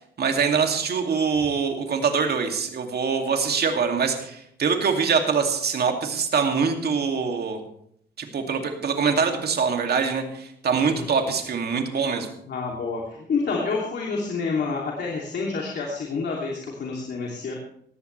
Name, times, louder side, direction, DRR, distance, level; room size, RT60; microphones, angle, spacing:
voice 1, 0.2-7.6 8.2-12.3, right 5 dB, 55° right, 4 dB, 2.5 m, -24 dB
voice 2, 12.5-13.0 13.3-17.5, left 4 dB, 60° left, -2 dB, 2.8 m, -28 dB
18.0 x 14.0 x 3.3 m, 0.70 s
cardioid pair, 90°, 19 cm